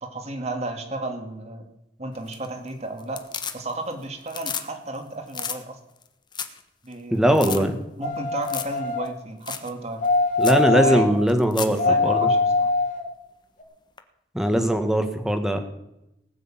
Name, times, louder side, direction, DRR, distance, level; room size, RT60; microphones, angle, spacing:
voice 1, 0.0-1.7 2.0-3.2 3.5-5.8 6.8-7.7 8.0-10.0 10.8-11.1 11.7-12.7, right 2 dB, 40° right, 5 dB, 2.3 m, -33 dB
sound 1, 2.1-2.7 3.0-3.9 4.2-4.7 4.9-5.0 5.3-5.6 6.0-6.1 6.3-6.6 6.9-7.0 7.3-7.6 8.4-8.8 9.0-9.1 9.5-9.7 10.0-10.1 10.4-10.6 11.3-11.8 14.0-14.1, left 7 dB, 25° left, 1.1 m, -32 dB
voice 2, 7.1-7.7 10.4-12.3 14.3-15.6, equal, 5° right, 7 dB, 1.6 m, -20 dB
sound 2, 8.0-9.1 10.0-11.1 11.8-13.0 13.6-13.7, left 3 dB, 45° left, 2.3 m, -22 dB
19.0 x 6.6 x 8.9 m, 0.88 s
head